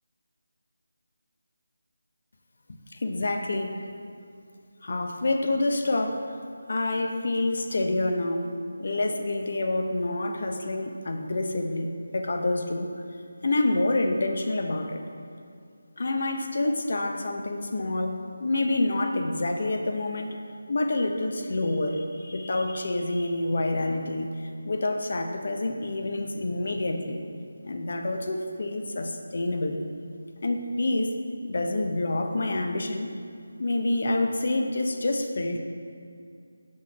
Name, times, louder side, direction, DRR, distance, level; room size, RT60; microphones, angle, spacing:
voice 1, 2.9-3.8 4.8-6.2 6.7-8.5 8.8-12.9 13.4-15.0 16.0-20.3 20.7-24.3 24.6-27.2 27.6-29.8 30.4-31.1 31.4-33.1 33.6-35.6, left 2 dB, 55° left, 4 dB, 0.7 m, -27 dB
6.3 x 5.8 x 5.0 m, 2.4 s
figure-of-eight pair, 170°, 0 cm